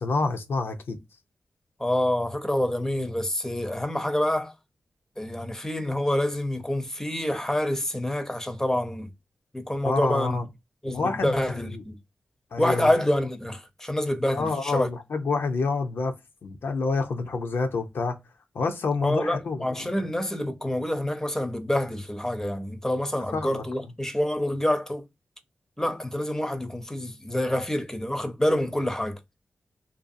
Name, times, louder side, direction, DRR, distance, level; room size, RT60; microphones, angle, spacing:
voice 1, 0.0-1.0 9.8-10.5 10.9-11.8 12.5-12.9 14.3-16.1 16.4-18.2 18.5-20.1 23.3-23.6, left 4 dB, 75° left, 0.5 m, -28 dB
voice 2, 1.8-4.5 5.2-9.1 9.5-10.4 10.8-12.0 12.6-14.9 19.0-25.0 25.8-29.2, left 1 dB, 10° left, 0.6 m, -27 dB
2.6 x 2.3 x 2.5 m
cardioid pair, 40°, 4 cm